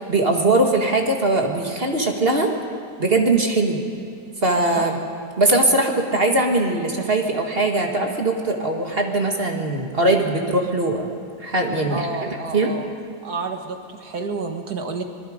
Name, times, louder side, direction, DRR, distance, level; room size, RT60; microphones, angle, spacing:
voice 1, 0.0-2.5 3.0-3.8 4.4-5.0 5.4-11.1 11.4-12.7, right 2 dB, 35° right, 2 dB, 2.0 m, -21 dB
voice 2, 11.9-12.9 13.2-15.0, right 4 dB, 65° right, 5 dB, 2.0 m, -30 dB
25.5 x 21.5 x 5.1 m, 2.4 s
omnidirectional pair, 1.8 m